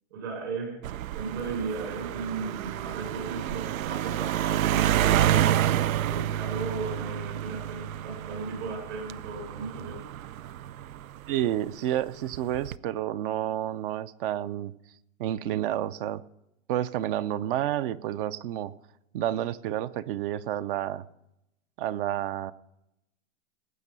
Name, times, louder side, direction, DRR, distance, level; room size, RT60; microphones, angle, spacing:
voice 1, 0.1-0.9 1.1-10.0, right 4 dB, 70° right, 3 dB, 6.5 m, -36 dB
sound 1, 0.8-11.6 12.3-12.8, right 11 dB, 85° right, 0.6 m, -29 dB
voice 2, 11.3-14.7 15.2-16.2 16.7-18.7 19.1-21.1 21.8-22.5, right 12 dB, 40° right, 15 dB, 0.6 m, -30 dB
18.5 x 8.2 x 5.4 m, 0.84 s
hypercardioid pair, 140°, 40 cm